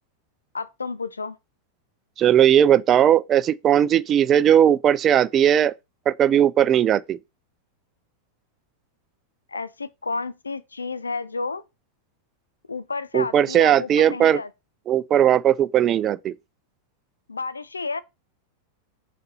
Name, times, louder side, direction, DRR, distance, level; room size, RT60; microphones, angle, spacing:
voice 1, 0.5-1.4 9.5-11.6 12.7-14.5 17.3-18.0, left 4 dB, 75° left, 0.7 m, -31 dB
voice 2, 2.2-5.7 6.1-7.2 13.1-14.4 14.9-16.3, right 10 dB, 30° right, 0.5 m, -18 dB
6.6 x 4.2 x 5.4 m
figure-of-eight pair, 90°, 0 cm